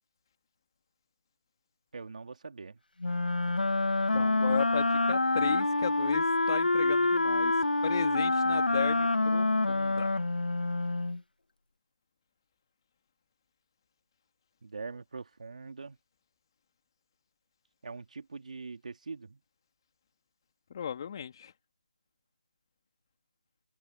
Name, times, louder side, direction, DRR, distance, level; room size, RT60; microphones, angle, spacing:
voice 1, 1.9-2.8 14.6-16.0 17.8-19.4, right 4 dB, 55° right, 2.5 m, -42 dB
Wind instrument woodwind instrument, 3.0-11.2, left 2 dB, 90° left, 1.7 m, -27 dB
voice 2, 4.1-7.5 7.8-10.1 20.7-21.5, left 8 dB, 30° left, 3.0 m, -35 dB
figure-of-eight pair, 165°, 5 cm